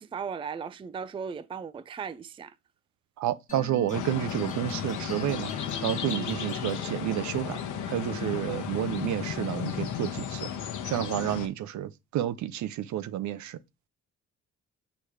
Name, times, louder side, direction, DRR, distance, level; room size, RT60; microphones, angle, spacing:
voice 1, 0.0-2.5, right 6 dB, 20° right, 0.4 m, -37 dB
voice 2, 3.2-5.5 5.8-7.6 7.9-10.5 10.8-13.6, right 12 dB, 70° right, 0.6 m, -30 dB
sound 1, 3.5-8.6, left 4 dB, 25° left, 0.9 m, -42 dB
sound 2, 3.9-11.5, left 9 dB, 75° left, 1.0 m, -34 dB
6.7 x 3.0 x 4.8 m
cardioid pair, 90°, 30 cm